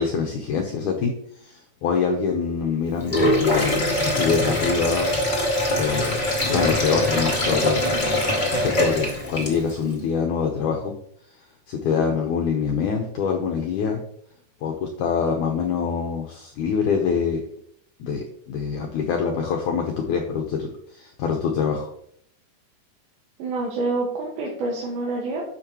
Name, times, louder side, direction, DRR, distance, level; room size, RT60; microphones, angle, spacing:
voice 1, 0.0-5.1 5.8-7.9 8.5-10.9 11.7-14.0 14.6-17.4 18.0-21.9, left 6 dB, 75° left, 2 dB, 1.9 m, -25 dB
Sink (filling or washing), 3.0-9.8, left 1 dB, 50° left, 0.5 m, -23 dB
voice 2, 23.4-25.4, right 3 dB, 75° right, -3 dB, 3.2 m, -27 dB
10.5 x 6.7 x 3.0 m, 0.67 s
omnidirectional pair, 4.5 m